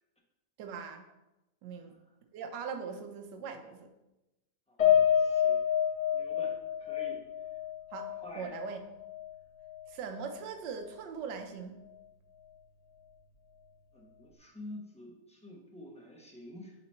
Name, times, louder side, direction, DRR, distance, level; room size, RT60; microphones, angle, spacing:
voice 1, 0.6-1.1 1.6-2.0 2.3-3.9 7.9-8.8 9.9-11.8, right 6 dB, 75° right, 6 dB, 1.4 m, -41 dB
Piano, 4.8-9.3 9.6-9.8 10.2-10.3, left 9 dB, 40° left, 1.7 m, -28 dB
voice 2, 5.1-5.6 6.1-7.2 8.2-8.6 13.9-16.7, left 1 dB, 5° left, -1 dB, 0.5 m, -48 dB
6.9 x 3.9 x 4.3 m, 0.97 s
omnidirectional pair, 2.0 m